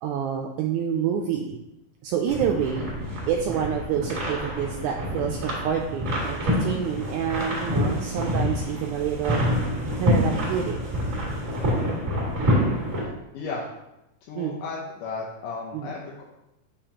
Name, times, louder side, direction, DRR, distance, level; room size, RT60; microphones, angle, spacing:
voice 1, 0.0-1.6 2.0-2.9 3.3-9.4 10.0-10.8 14.4-14.6 15.7-15.9, right 8 dB, 80° right, 1 dB, 1.8 m, -27 dB
sound 1, 2.3-13.1, equal, 30° right, 1.9 m, -27 dB
voice 2, 13.3-13.7 14.3-16.2, left 4 dB, 80° left, -3 dB, 2.3 m, -35 dB
6.7 x 5.6 x 2.9 m, 0.90 s
omnidirectional pair, 3.8 m